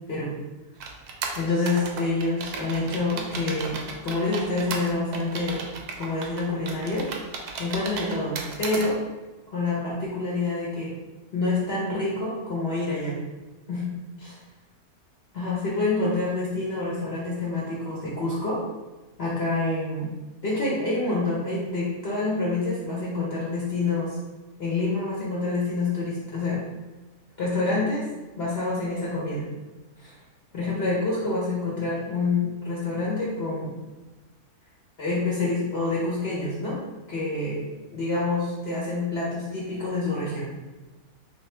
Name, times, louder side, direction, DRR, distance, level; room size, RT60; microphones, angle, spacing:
sound 1, 0.8-8.9, right 4 dB, 80° right, 1.1 m, -35 dB
voice 1, 1.4-5.7 6.0-7.1 7.6-9.0 9.5-10.9 11.3-13.1 13.7-13.9 14.2-14.4 15.3-18.6 19.2-20.1 20.4-24.2 24.6-26.6 27.4-28.1 28.4-29.5 30.0-30.1 30.5-33.7 35.0-36.8 37.1-37.7 37.9-40.5, left 3 dB, 50° left, -6 dB, 0.9 m, -27 dB
3.7 x 3.1 x 3.2 m, 1.2 s
omnidirectional pair, 1.6 m